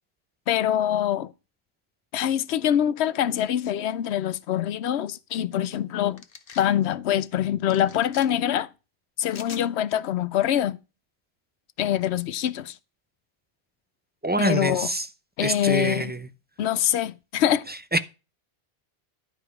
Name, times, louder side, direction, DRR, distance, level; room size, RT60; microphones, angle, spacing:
voice 1, 0.5-1.3 2.1-6.2 6.6-8.7 9.2-10.8 11.8-12.7 14.4-14.9 15.4-16.1 16.6-17.7, left 10 dB, 85° left, 0.9 m, -24 dB
sound 1, 6.2-6.7 7.7-8.3 9.3-9.7, left 6 dB, 60° left, 1.1 m, -43 dB
voice 2, 14.2-15.1 15.4-16.2 17.7-18.0, right 2 dB, 15° right, 0.3 m, -25 dB
11.5 x 5.0 x 4.8 m
omnidirectional pair, 1.1 m